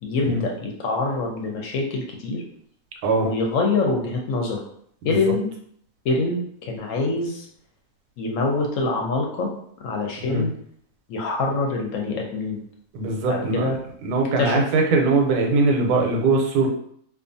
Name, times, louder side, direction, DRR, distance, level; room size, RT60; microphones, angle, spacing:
voice 1, 0.0-2.4 3.2-4.6 5.0-5.5 6.0-7.5 8.2-9.5 9.8-10.5 11.1-12.6 13.3-13.8 14.4-14.6, left 3 dB, 70° left, 0 dB, 0.8 m, -25 dB
voice 2, 12.9-13.7 14.0-16.7, right 3 dB, 85° right, 1 dB, 1.1 m, -21 dB
2.5 x 2.4 x 2.5 m, 0.65 s
omnidirectional pair, 1.6 m